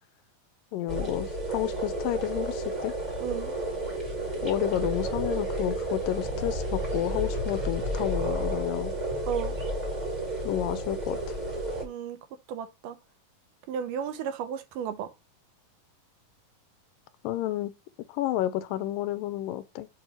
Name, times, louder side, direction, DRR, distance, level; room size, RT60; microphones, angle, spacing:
voice 1, 0.7-2.9 4.4-8.9 10.4-11.4 17.2-17.7 18.1-19.9, left 13 dB, 85° left, 2.3 m, -30 dB
sound 1, 0.9-11.8, right 1 dB, 25° right, 0.9 m, -31 dB
voice 2, 3.2-3.5 9.3-9.5 11.8-12.2 12.5-13.0 13.7-15.1, right 8 dB, 80° right, 2.3 m, -33 dB
6.9 x 3.0 x 4.8 m
omnidirectional pair, 3.9 m